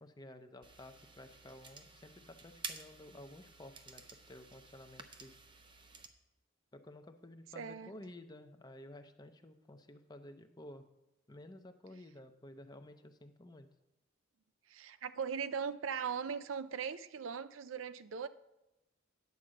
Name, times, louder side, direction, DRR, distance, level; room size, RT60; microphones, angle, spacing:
voice 1, 0.0-5.4 6.7-10.9 11.3-13.7, left 1 dB, 20° left, 8 dB, 0.6 m, -53 dB
mouse clicks, 0.6-6.1, right 4 dB, 25° right, 0.6 m, -51 dB
voice 2, 7.6-7.9 14.7-18.3, right 6 dB, 90° right, 13 dB, 0.5 m, -39 dB
9.5 x 4.9 x 7.6 m, 0.98 s
head